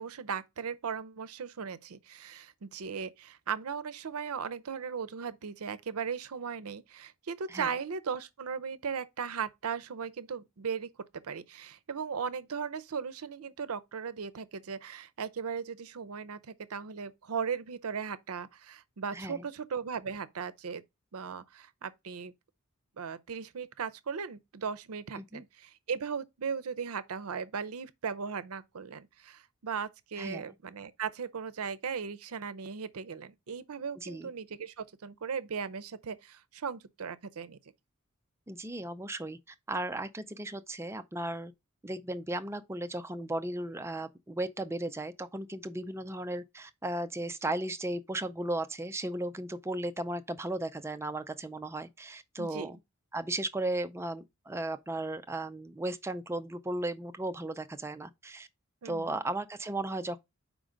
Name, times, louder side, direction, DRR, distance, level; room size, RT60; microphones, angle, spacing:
voice 1, 0.0-20.8 21.1-22.3 23.0-37.6 52.4-52.7 58.8-59.1, right 6 dB, 80° right, 0.6 m, -37 dB
voice 2, 19.1-19.5 25.2-25.4 30.2-30.4 34.0-34.3 38.5-41.5 41.8-52.8 53.1-58.5 58.8-60.2, right 1 dB, 10° right, 0.4 m, -36 dB
5.0 x 3.8 x 5.0 m
head